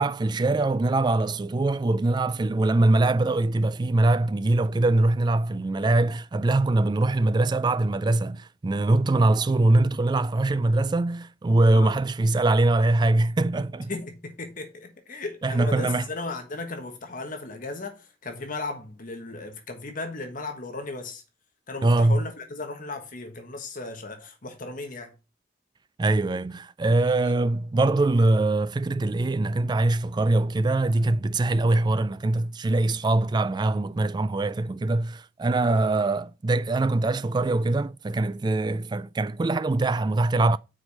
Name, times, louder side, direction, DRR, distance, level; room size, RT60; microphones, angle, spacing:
voice 1, 0.0-13.9 15.4-16.0 21.8-22.2 26.0-40.6, right 2 dB, 25° right, 0.3 m, -23 dB
voice 2, 13.9-21.2 21.7-25.1 27.0-27.4 35.6-35.9, left 3 dB, 45° left, 1.4 m, -36 dB
6.2 x 4.9 x 5.3 m
head